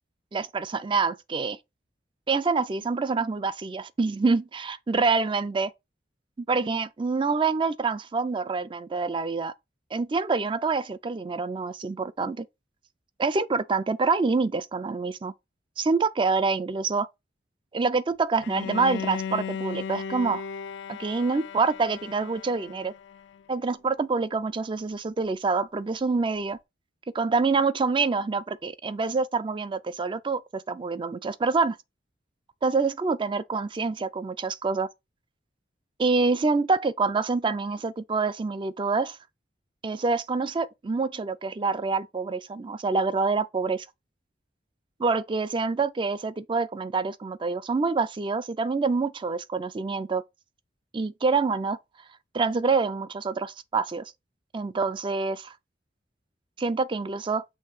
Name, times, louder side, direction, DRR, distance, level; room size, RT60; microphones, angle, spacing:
voice 1, 0.3-1.6 2.3-5.7 6.4-9.5 9.9-12.5 13.2-15.3 15.8-17.1 17.7-20.4 20.9-22.9 23.5-26.6 27.1-31.8 32.6-34.9 36.0-39.2 39.8-43.9 45.0-50.2 50.9-51.8 52.3-54.1 54.5-55.5 56.6-57.4, right 4 dB, 25° right, 0.4 m, -26 dB
Bowed string instrument, 18.4-23.4, left 7 dB, 75° left, 0.3 m, -36 dB
6.3 x 3.1 x 4.9 m
head